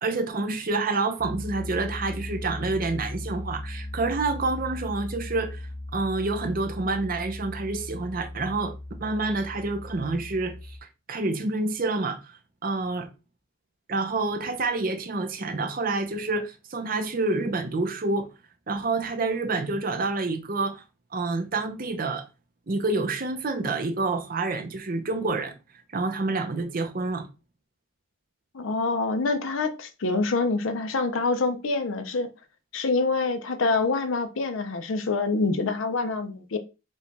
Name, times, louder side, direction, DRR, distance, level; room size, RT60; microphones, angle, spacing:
voice 1, 0.0-5.7 5.9-8.7 9.0-10.8 11.1-13.1 13.9-18.3 18.7-20.8 21.1-22.3 22.7-25.5 25.9-27.3, right 3 dB, 45° right, 0.6 m, -28 dB
Piano, 1.2-10.8, left 1 dB, 15° left, 1.2 m, -37 dB
voice 2, 28.5-32.3 32.7-36.6, left 3 dB, 75° left, 0.6 m, -26 dB
4.6 x 2.3 x 4.0 m
head